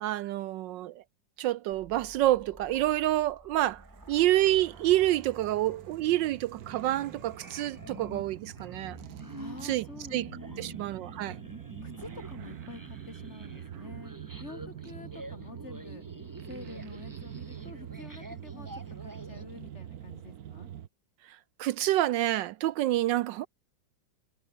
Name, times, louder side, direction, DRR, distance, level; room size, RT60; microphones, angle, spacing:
voice 1, 0.0-0.9 1.4-3.8 4.1-9.0 9.6-9.8 10.1-10.3 10.6-11.4 21.6-23.5, right 14 dB, 75° right, 1.2 m, -28 dB
sound 1, 1.7-19.4, right 1 dB, 10° right, 4.3 m, -48 dB
sound 2, 3.7-20.9, right 10 dB, 60° right, 1.3 m, -45 dB
voice 2, 9.4-10.8 11.3-11.4 11.8-16.1 16.5-18.7 19.0-20.7, left 3 dB, 35° left, 3.2 m, -48 dB
omnidirectional pair, 2.1 m